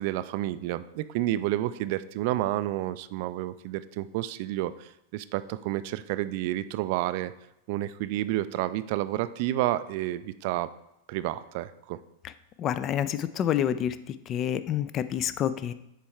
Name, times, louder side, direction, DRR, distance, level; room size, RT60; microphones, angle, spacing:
voice 1, 0.0-7.3 7.7-10.7 11.1-12.0, right 14 dB, 50° right, 14 dB, 0.3 m, -30 dB
voice 2, 12.6-15.7, left 10 dB, 30° left, 13 dB, 0.4 m, -28 dB
6.9 x 4.6 x 4.4 m, 0.85 s
figure-of-eight pair, 90°, 0 cm